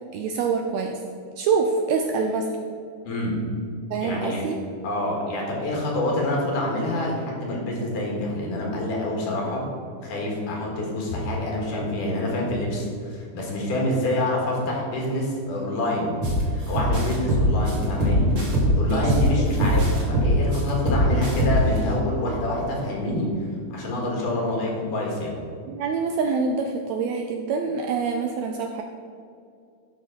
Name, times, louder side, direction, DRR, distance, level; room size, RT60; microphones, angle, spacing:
voice 1, 0.1-1.0 1.4-2.5 3.9-4.6 18.9-19.3 24.3-24.4 25.7-28.8, right 5 dB, 80° right, 3 dB, 1.6 m, -26 dB
voice 2, 4.0-4.4 4.8-9.7 10.0-16.2 16.5-18.3 18.8-23.3 23.7-25.4, left 1 dB, 85° left, -2 dB, 3.3 m, -27 dB
sound 1, 16.2-16.4 16.7-19.3 19.6-21.8, right 1 dB, 30° right, 1.7 m, -22 dB
11.5 x 6.0 x 3.8 m, 2.4 s
omnidirectional pair, 3.6 m